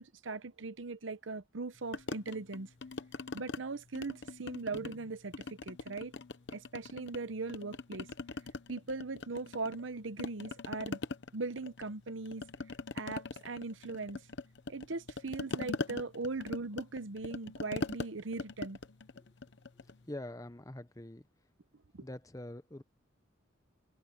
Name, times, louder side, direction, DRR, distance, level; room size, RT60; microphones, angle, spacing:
voice 1, 0.0-2.7 3.3-6.1 6.5-8.1 8.7-11.0 11.3-12.4 12.9-14.2 14.7-18.8, right 3 dB, 80° right, 0.9 m, -39 dB
sound 1, 1.9-3.6 3.9-5.0 5.3-7.2 7.5-9.9 10.2-20.0, left 3 dB, 60° left, 0.9 m, -42 dB
voice 2, 20.0-21.3 22.0-22.8, left 1 dB, 15° left, 0.9 m, -44 dB
head